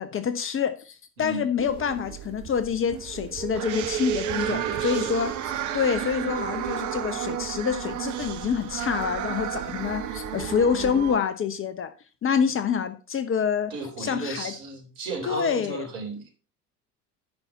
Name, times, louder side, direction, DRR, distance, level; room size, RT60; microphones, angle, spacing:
voice 1, 0.0-11.9 12.2-13.7 14.0-14.5 15.3-15.9, left 7 dB, 25° left, 10 dB, 1.0 m, -27 dB
sound 1, 1.6-11.2, right 10 dB, 40° right, 1.1 m, -32 dB
voice 2, 4.4-5.1 13.7-16.3, right 3 dB, 60° right, 1 dB, 3.9 m, -35 dB
9.9 x 5.8 x 5.5 m, 0.35 s
figure-of-eight pair, 70°, 46 cm